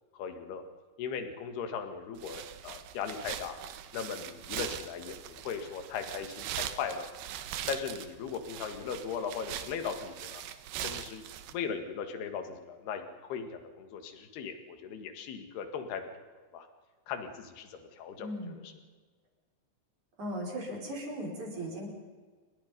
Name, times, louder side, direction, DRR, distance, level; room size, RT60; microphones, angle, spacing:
voice 1, 0.1-0.6 1.0-3.6 3.9-7.1 7.7-10.4 10.8-11.2 11.5-16.1 16.5-16.7 17.1-18.7, left 6 dB, 60° left, 6 dB, 3.6 m, -38 dB
sound 1, 2.2-11.5, right 11 dB, 70° right, 2.9 m, -41 dB
voice 2, 18.2-18.5 20.2-21.9, equal, 35° right, 0 dB, 6.5 m, -37 dB
29.5 x 24.0 x 5.4 m, 1.5 s
omnidirectional pair, 5.7 m